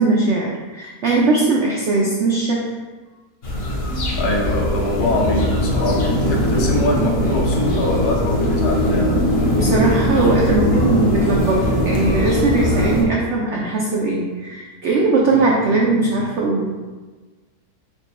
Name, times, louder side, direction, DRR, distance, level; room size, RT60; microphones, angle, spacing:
voice 1, 0.0-2.7 9.5-16.7, right 3 dB, 90° right, -3 dB, 0.6 m, -19 dB
sound 1, 3.4-13.0, equal, 50° left, 0.8 m, -20 dB
voice 2, 4.2-9.2, left 2 dB, 75° left, -2 dB, 1.5 m, -22 dB
4.8 x 2.2 x 4.0 m, 1.3 s
omnidirectional pair, 1.8 m